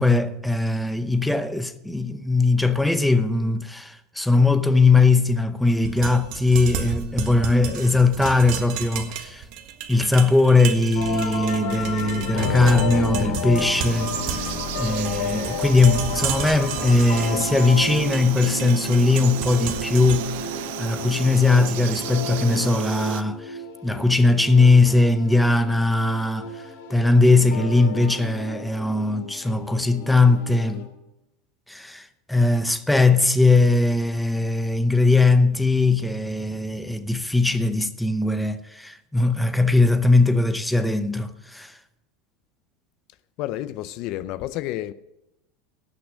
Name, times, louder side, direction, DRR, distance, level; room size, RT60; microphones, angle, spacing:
voice 1, 0.0-9.4 9.9-26.6 26.9-30.9 31.7-41.8, left 3 dB, 5° left, 0.7 m, -20 dB
sound 1, 5.8-21.8, right 8 dB, 55° right, 1.6 m, -34 dB
sound 2, 10.9-30.8, left 4 dB, 75° left, 3.1 m, -32 dB
Frog, 13.8-23.2, right 13 dB, 70° right, 0.5 m, -33 dB
voice 2, 43.4-44.9, left 14 dB, 50° left, 0.5 m, -30 dB
18.0 x 6.1 x 6.4 m
supercardioid pair, 145°, 0 cm